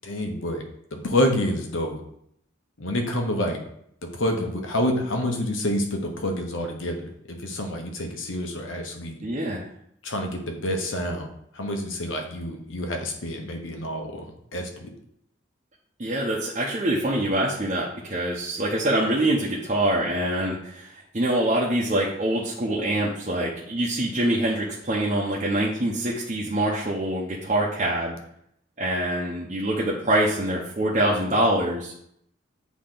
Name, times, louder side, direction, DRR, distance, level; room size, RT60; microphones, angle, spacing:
voice 1, 0.0-0.6 0.9-2.0 2.8-3.6 4.0-9.2 10.0-11.3 11.5-14.2 14.5-14.9, left 1 dB, 90° left, 3 dB, 1.1 m, -28 dB
voice 2, 9.2-9.6 16.0-28.2 28.8-31.9, right 1 dB, 35° right, -5 dB, 0.9 m, -25 dB
8.6 x 3.1 x 3.8 m, 0.72 s
head